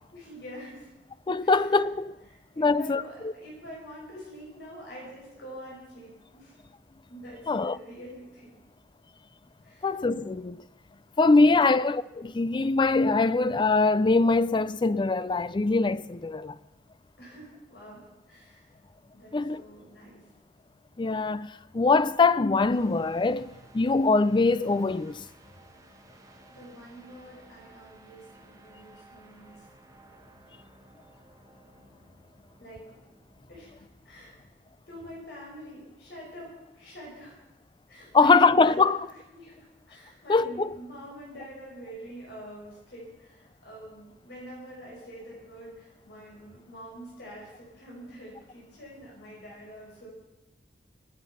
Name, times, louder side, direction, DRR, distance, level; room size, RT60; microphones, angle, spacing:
voice 1, 0.1-1.0 1.4-1.8 2.5-6.6 7.1-8.6 9.6-10.0 11.3-11.7 17.2-18.7 19.1-20.3 26.5-29.7 32.6-32.8 33.5-33.7 34.0-34.3 34.9-37.4 37.9-50.1, equal, 70° left, 5.8 m, -46 dB
voice 2, 1.3-2.1 2.6-3.0 7.5-7.8 9.8-10.6 11.2-16.5 19.3-19.6 21.0-25.2 38.1-39.0 40.3-40.7, left 3 dB, 25° left, 0.4 m, -23 dB
sound 1, 22.7-34.7, right 2 dB, 20° right, 1.4 m, -56 dB
24.0 x 9.0 x 5.7 m
head